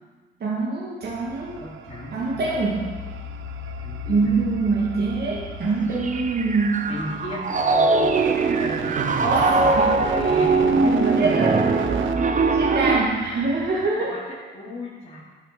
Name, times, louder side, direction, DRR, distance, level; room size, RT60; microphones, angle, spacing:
voice 1, 0.4-1.6 2.1-2.9 4.1-6.9 9.2-9.9 10.9-11.7 12.5-14.2, right 3 dB, 55° right, -5 dB, 2.3 m, -24 dB
sound 1, 1.0-13.9, right 8 dB, 80° right, 0.8 m, -38 dB
voice 2, 1.6-2.5 3.8-4.3 6.9-11.2 14.0-15.2, left 1 dB, 35° left, -11 dB, 3.7 m, -35 dB
sound 2, 1.9-9.6, left 9 dB, 80° left, 1.0 m, -40 dB
Piano, 6.0-13.0, right 3 dB, 40° right, 0.9 m, -21 dB
12.5 x 7.4 x 5.1 m, 1.4 s
cardioid pair, 90°, 20 cm